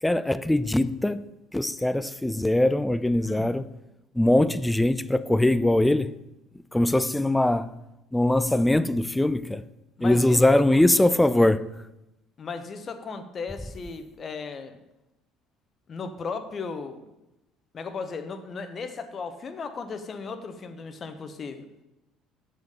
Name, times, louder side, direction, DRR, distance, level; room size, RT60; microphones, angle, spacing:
voice 1, 0.0-3.7 4.1-6.2 6.7-7.7 8.1-9.6 10.0-11.7, left 1 dB, 10° left, 0.4 m, -22 dB
voice 2, 10.0-10.6 11.0-11.1 12.4-14.8 15.9-17.0 17.7-21.7, left 4 dB, 40° left, 1.1 m, -36 dB
7.0 x 6.4 x 6.9 m
figure-of-eight pair, 60°, 0 cm